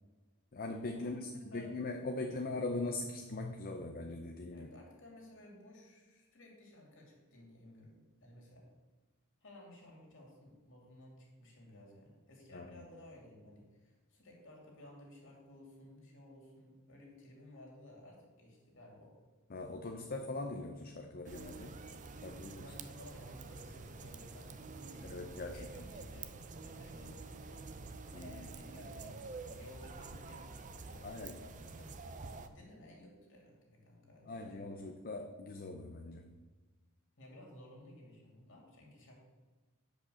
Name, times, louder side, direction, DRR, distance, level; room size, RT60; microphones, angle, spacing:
voice 1, 0.5-4.7 12.5-12.8 19.5-21.7 22.2-22.7 25.0-25.8 28.1-28.5 31.0-31.4 34.2-36.4, left 2 dB, 40° left, 3 dB, 0.6 m, -41 dB
voice 2, 1.5-1.8 4.5-8.7 9.4-19.2 22.6-24.6 24.9-27.6 28.1-32.0 32.4-35.0 37.2-39.2, left 1 dB, 60° left, -1 dB, 2.6 m, -56 dB
sound 1, 21.2-32.5, right 3 dB, 35° right, 0.5 m, -48 dB
8.4 x 5.1 x 6.9 m, 1.3 s
head